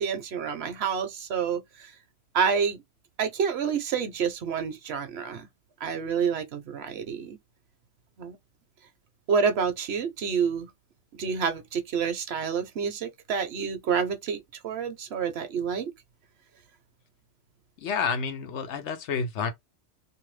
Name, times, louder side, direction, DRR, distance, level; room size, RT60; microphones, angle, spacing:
voice 1, 0.0-1.9 2.3-2.8 3.2-5.5 5.8-7.4 8.2-8.4 9.3-10.7 11.1-15.9, right 6 dB, 65° right, 0.9 m, -28 dB
voice 2, 17.8-19.5, left 5 dB, 80° left, 1.0 m, -29 dB
2.6 x 2.2 x 3.1 m
omnidirectional pair, 1.2 m